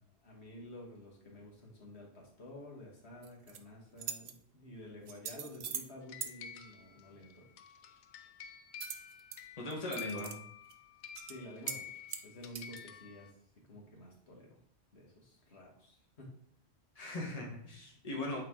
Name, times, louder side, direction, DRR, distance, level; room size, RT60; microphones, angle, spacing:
voice 1, 0.2-7.5 11.3-11.9 12.2-13.4 13.7-14.6 14.9-16.3, left 1 dB, 70° left, -2 dB, 1.8 m, -51 dB
sound 1, 3.2-3.6 4.0-4.3 5.1-5.9 6.2-6.3 8.8-9.4 9.7-10.4 10.7-10.8 11.2-11.3 11.7-11.8 12.1-12.8, right 7 dB, 60° right, 0.7 m, -41 dB
sound 2, 6.1-13.3, left 8 dB, 90° left, 0.9 m, -49 dB
voice 2, 9.6-10.3 16.9-18.4, left 1 dB, 35° left, -1 dB, 1.4 m, -39 dB
8.5 x 3.2 x 3.6 m, 0.64 s
omnidirectional pair, 1.1 m